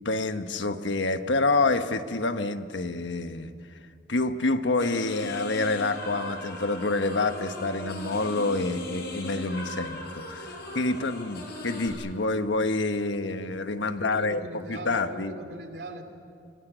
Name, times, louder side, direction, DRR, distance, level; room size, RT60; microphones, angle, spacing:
voice 1, 0.0-3.5 4.1-15.3, left 3 dB, 85° left, 9 dB, 1.3 m, -27 dB
sound 1, 4.8-11.9, left 1 dB, 60° left, 6.1 m, -38 dB
voice 2, 14.0-16.0, right 1 dB, 70° right, 5 dB, 3.0 m, -40 dB
25.5 x 21.0 x 9.2 m, 2.4 s
head